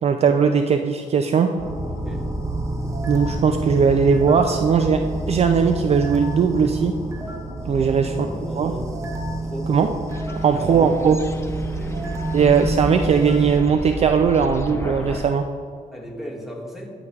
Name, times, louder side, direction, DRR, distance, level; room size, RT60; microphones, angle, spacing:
voice 1, 0.0-1.5 3.1-7.0 7.7-8.1 8.6-8.7 9.7-9.9 10.4-11.2 12.3-15.5, right 6 dB, 45° right, 6 dB, 0.4 m, -19 dB
sound 1, 1.6-13.7, right 2 dB, 20° right, 1.0 m, -28 dB
voice 2, 7.7-8.9 9.3-9.7 10.3-11.0 11.7-12.0 15.9-16.9, equal, ahead, -2 dB, 1.7 m, -36 dB
sound 2, 10.1-15.2, left 1 dB, 20° left, 0.5 m, -33 dB
11.5 x 5.3 x 2.3 m, 2.1 s
cardioid pair, 80°, 15 cm